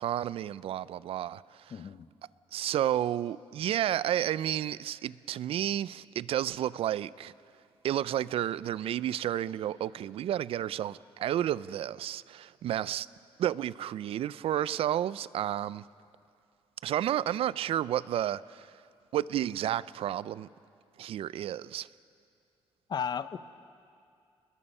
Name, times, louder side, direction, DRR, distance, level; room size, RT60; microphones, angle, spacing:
voice 1, 0.0-1.7 2.5-7.3 7.8-13.1 13.4-15.8 16.8-18.7 19.1-20.5 21.0-21.9, right 11 dB, 70° right, 0.4 m, -31 dB
voice 2, 1.7-2.1 22.9-23.4, left 7 dB, 45° left, 0.8 m, -34 dB
29.5 x 21.0 x 5.5 m
cardioid pair, 115°, 10 cm